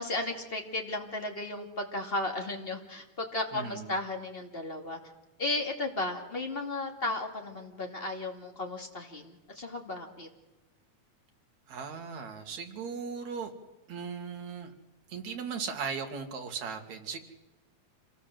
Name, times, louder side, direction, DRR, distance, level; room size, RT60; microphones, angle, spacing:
voice 1, 0.0-5.0 5.4-10.3, left 2 dB, 20° left, 3 dB, 2.5 m, -34 dB
voice 2, 3.5-3.9 11.7-13.5 13.9-14.7 15.1-17.2, right 6 dB, 70° right, 4 dB, 3.5 m, -37 dB
27.0 x 19.5 x 7.8 m, 1.1 s
omnidirectional pair, 3.3 m